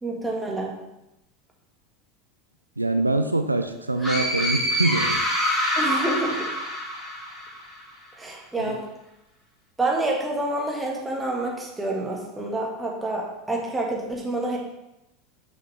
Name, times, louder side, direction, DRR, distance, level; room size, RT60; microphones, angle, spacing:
voice 1, 0.0-0.7 5.8-6.5 8.2-8.8 9.8-14.6, right 2 dB, 10° right, -1 dB, 1.6 m, -28 dB
voice 2, 2.8-5.2 8.6-8.8, right 2 dB, 90° right, 7 dB, 0.3 m, -24 dB
sound 1, 4.0-7.7, equal, 15° left, 2.2 m, -26 dB
6.0 x 5.7 x 3.3 m, 0.90 s
figure-of-eight pair, 80°, 0 cm